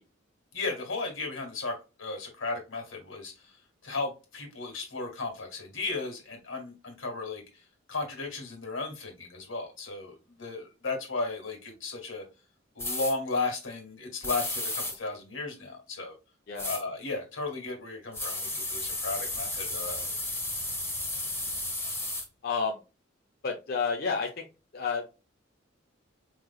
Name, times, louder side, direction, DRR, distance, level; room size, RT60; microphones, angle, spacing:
voice 1, 0.5-3.3 3.8-7.4 7.9-12.2 12.7-16.1 16.6-20.1, left 3 dB, 85° left, 2 dB, 1.8 m, -35 dB
sound 1, 12.8-13.1 14.2-14.9 16.6-16.8 18.1-22.2, left 2 dB, 10° left, 1.2 m, -33 dB
voice 2, 22.4-22.8 23.4-24.5 24.7-25.1, left 5 dB, 50° left, 0 dB, 0.6 m, -30 dB
4.9 x 3.2 x 2.3 m, 0.29 s
head